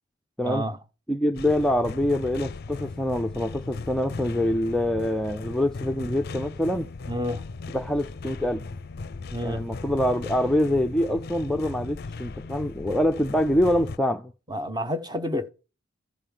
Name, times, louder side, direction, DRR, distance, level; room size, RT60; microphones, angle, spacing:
voice 1, 0.4-0.8 7.1-7.4 9.3-9.7 14.5-15.5, equal, 20° right, 1.0 m, -29 dB
voice 2, 1.1-6.9 7.7-8.6 9.4-14.3, left 1 dB, 5° left, 0.5 m, -25 dB
sound 1, 1.3-14.0, left 3 dB, 55° left, 0.5 m, -37 dB
14.5 x 5.3 x 7.2 m
head